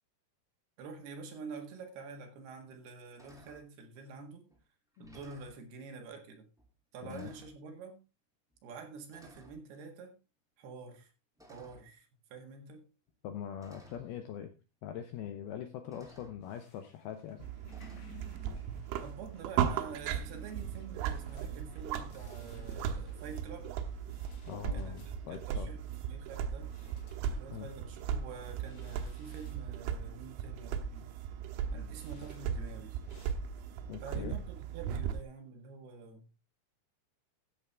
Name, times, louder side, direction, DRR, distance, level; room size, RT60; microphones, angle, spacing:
voice 1, 0.8-4.5 5.0-6.5 6.9-8.0 8.6-10.2 10.6-11.1 11.5-12.9 19.0-23.7 24.7-25.0 25.3-26.7 27.3-31.1 31.7-33.0 34.0-36.3, right 4 dB, 65° right, 3.5 m, -47 dB
sound 1, 3.2-3.7 4.5-4.6 4.9-5.6 6.6-6.8 7.1-7.6 8.5-8.7 9.1-9.6 11.4-12.0 13.1-13.2 13.6-14.1 15.3-15.4 15.9-16.4 17.7-18.0, equal, ahead, 0.9 m, -57 dB
voice 2, 13.2-14.5 14.8-17.5 24.5-25.7 27.5-27.7 33.9-34.4, left 9 dB, 75° left, 2.3 m, -42 dB
sound 2, 16.4-33.3, left 4 dB, 50° left, 3.1 m, -61 dB
sound 3, 17.4-35.2, right 8 dB, 90° right, 3.4 m, -37 dB
14.0 x 8.9 x 3.4 m
omnidirectional pair, 5.4 m